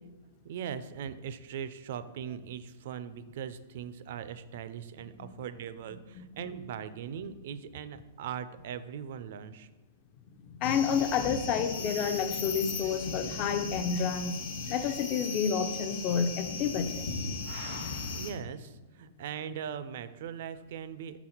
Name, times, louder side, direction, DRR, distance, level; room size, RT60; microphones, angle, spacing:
voice 1, 0.4-9.7 18.1-21.2, right 8 dB, 55° right, 13 dB, 0.4 m, -40 dB
voice 2, 6.2-6.7 10.5-14.4 14.7-17.0, left 6 dB, 30° left, 9 dB, 0.4 m, -30 dB
sound 1, 10.6-18.3, left 4 dB, 55° left, 0.9 m, -37 dB
5.7 x 4.0 x 4.4 m, 1.2 s
hypercardioid pair, 160°, 0 cm